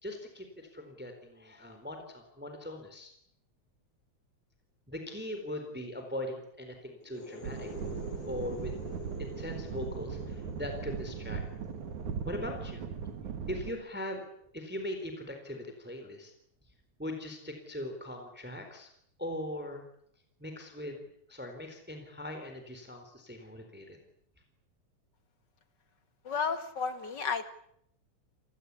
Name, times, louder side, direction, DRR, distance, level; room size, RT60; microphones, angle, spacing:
voice 1, 0.0-3.1 4.9-7.7 8.3-8.8 9.2-11.4 12.3-12.9 13.5-14.2 14.5-16.3 17.0-18.9 19.2-19.8 20.4-21.0 21.3-24.0, left 1 dB, 5° right, 5 dB, 3.7 m, -40 dB
sound 1, 7.0-14.6, equal, 80° left, 4.7 m, -48 dB
sound 2, 7.4-13.7, right 6 dB, 80° right, 3.3 m, -39 dB
voice 2, 26.2-27.5, left 5 dB, 40° left, 10 dB, 2.2 m, -32 dB
30.0 x 19.5 x 8.4 m, 0.73 s
omnidirectional pair, 3.4 m